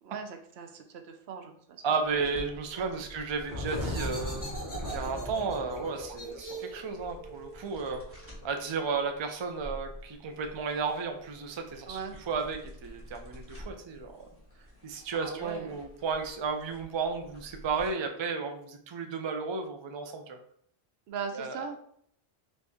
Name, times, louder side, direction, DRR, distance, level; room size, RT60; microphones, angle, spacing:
voice 1, 0.0-1.8 2.7-3.0 5.1-5.4 11.9-12.2 15.1-15.8 21.1-21.8, right 6 dB, 80° right, 6 dB, 0.8 m, -40 dB
voice 2, 1.8-4.5 4.8-12.0 12.3-14.3 14.8-20.4 21.3-21.6, right 5 dB, 45° right, 5 dB, 0.3 m, -33 dB
sound 1, 2.0-17.9, equal, 15° right, 1.2 m, -48 dB
sound 2, 3.4-8.8, equal, 20° left, 0.9 m, -38 dB
4.2 x 2.6 x 3.5 m, 0.64 s
omnidirectional pair, 1.1 m